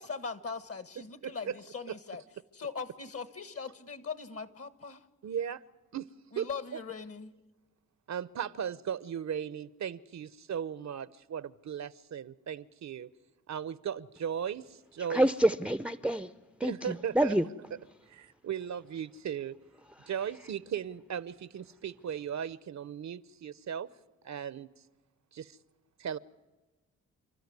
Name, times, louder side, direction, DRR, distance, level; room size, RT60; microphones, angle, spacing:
voice 1, 0.0-2.2 2.5-5.0 6.3-7.3, left 5 dB, 45° left, 1.6 m, -40 dB
voice 2, 1.2-1.5 5.2-5.6 5.9-6.1 6.4-6.5 8.1-13.1 13.5-15.3 16.6-17.4 18.1-19.6 20.1-23.9 24.2-24.7 25.3-25.6 26.0-26.2, right 8 dB, 55° right, 0.8 m, -37 dB
voice 3, 15.1-16.3 16.6-17.4, right 1 dB, 5° right, 0.6 m, -27 dB
29.5 x 13.0 x 9.6 m
cardioid pair, 60°, 32 cm